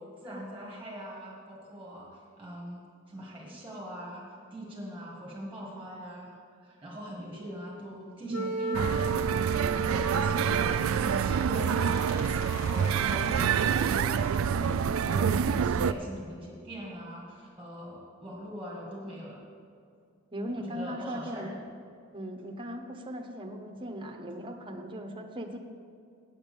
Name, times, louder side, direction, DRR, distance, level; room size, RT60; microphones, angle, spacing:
voice 1, 0.0-4.2 4.5-6.4 6.6-12.0 12.3-14.7 15.0-19.4 20.6-21.6, equal, 5° right, -4 dB, 1.8 m, -41 dB
Wind instrument woodwind instrument, 8.3-13.4, right 5 dB, 50° right, 0.8 m, -35 dB
sound 1, 8.7-15.9, right 7 dB, 75° right, 0.3 m, -27 dB
Squeak, 10.0-15.7, left 1 dB, 80° left, 2.2 m, -46 dB
voice 2, 20.3-21.5 22.1-25.6, equal, 25° right, 3 dB, 0.9 m, -38 dB
8.7 x 7.4 x 6.9 m, 2.3 s
head